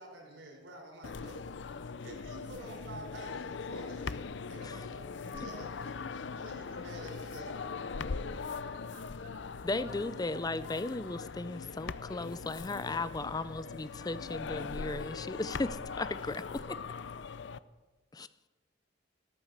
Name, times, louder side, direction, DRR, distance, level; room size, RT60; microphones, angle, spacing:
voice 1, 0.0-1.8 2.0-7.6, right 1 dB, 90° right, 0 dB, 4.9 m, -49 dB
sound 1, 1.0-17.6, left 5 dB, 70° left, 0.6 m, -41 dB
voice 2, 6.6-7.8 8.6-9.4, right 4 dB, 60° right, 2 dB, 1.4 m, -56 dB
voice 3, 9.6-16.8 18.1-18.3, left 2 dB, 20° left, 15 dB, 0.4 m, -36 dB
14.5 x 13.0 x 6.6 m, 1.2 s
head